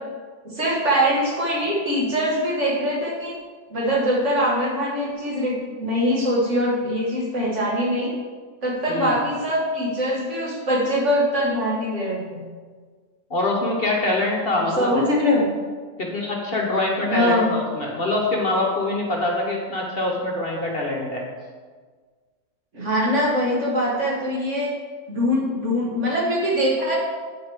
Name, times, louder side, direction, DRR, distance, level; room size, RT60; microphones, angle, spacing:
voice 1, 0.4-3.3 3.7-8.1 8.6-12.4 14.6-15.5 17.0-17.5 22.7-24.7 25.1-27.0, equal, 50° right, -4 dB, 2.1 m, -23 dB
voice 2, 8.9-9.2 13.3-14.9 16.0-21.2, left 2 dB, 45° left, -1 dB, 1.1 m, -24 dB
9.0 x 7.7 x 3.5 m, 1.5 s
omnidirectional pair, 1.6 m